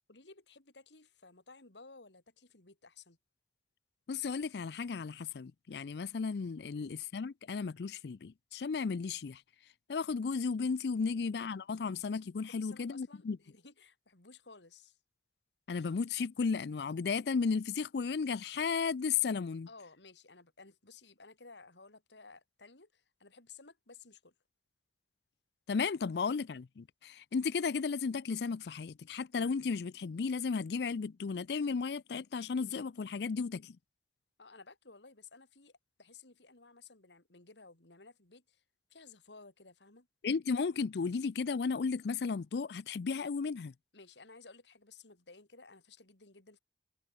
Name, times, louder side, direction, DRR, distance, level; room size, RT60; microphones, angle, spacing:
voice 1, 0.1-3.2 6.6-6.9 11.0-11.6 12.5-15.0 19.7-24.3 34.4-38.6 38.9-40.1 43.9-46.6, left 4 dB, 90° left, 3.0 m, -56 dB
voice 2, 4.1-9.4 9.9-13.4 15.7-19.7 25.7-33.8 40.2-43.7, left 5 dB, 70° left, 0.4 m, -34 dB
head